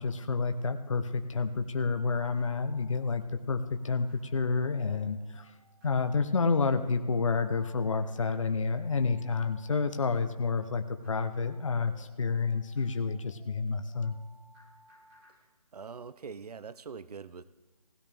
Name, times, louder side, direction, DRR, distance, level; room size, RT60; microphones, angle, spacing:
voice 1, 0.0-5.5 5.8-14.2, left 4 dB, 55° left, 8 dB, 0.7 m, -29 dB
sound 1, 1.5-15.3, equal, 10° right, 1.8 m, -61 dB
voice 2, 15.7-17.4, right 5 dB, 85° right, 16 dB, 0.5 m, -43 dB
16.5 x 12.0 x 3.4 m, 1.3 s
hypercardioid pair, 175°, 19 cm